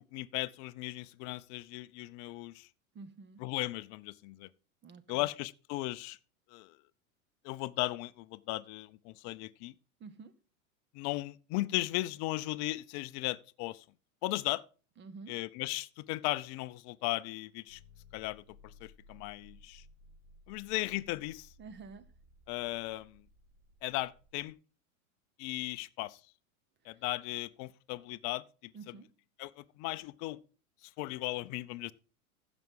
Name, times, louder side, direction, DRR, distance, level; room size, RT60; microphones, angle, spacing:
voice 1, 0.0-2.7 3.4-4.5 5.1-6.2 6.5-6.8 7.4-9.7 10.9-13.8 14.2-14.6 15.3-17.8 18.1-19.8 20.5-21.5 22.5-23.2 23.8-24.6 25.4-26.2 26.9-28.9 29.4-30.4 30.8-31.9, left 19 dB, 40° left, 0.6 m, -37 dB
voice 2, 2.9-3.4 4.8-5.3 10.0-10.3 15.0-15.4 21.6-22.1 28.7-29.1, right 4 dB, 25° right, 1.1 m, -49 dB
sound 1, 17.7-24.5, left 2 dB, 75° right, 3.1 m, -59 dB
15.0 x 6.0 x 3.8 m
hypercardioid pair, 110°, 43 cm